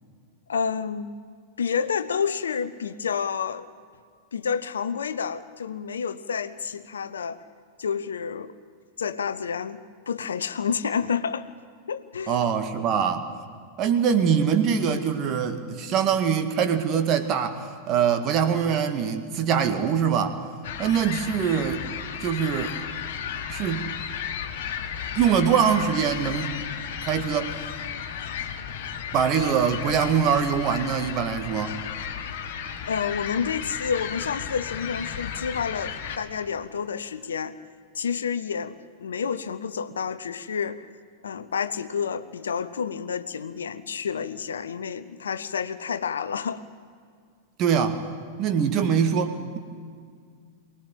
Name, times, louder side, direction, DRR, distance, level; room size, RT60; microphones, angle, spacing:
voice 1, 0.5-1.1 1.6-3.7 4.3-7.4 7.8-8.5 9.0-9.8 10.1-11.5 11.9-12.5 32.9-37.6 37.9-40.9 41.2-46.6, left 6 dB, 70° left, 13 dB, 0.8 m, -29 dB
voice 2, 12.3-13.3 13.8-20.4 20.8-21.8 22.2-22.8 23.5-23.9 25.2-26.6 27.0-27.5 29.1-31.8 47.6-48.0 48.4-49.6, right 7 dB, 35° right, 8 dB, 1.8 m, -23 dB
sound 1, 20.6-36.2, left 8 dB, 55° left, 1.9 m, -34 dB
23.5 x 19.0 x 7.8 m, 2.1 s
figure-of-eight pair, 90°, 0 cm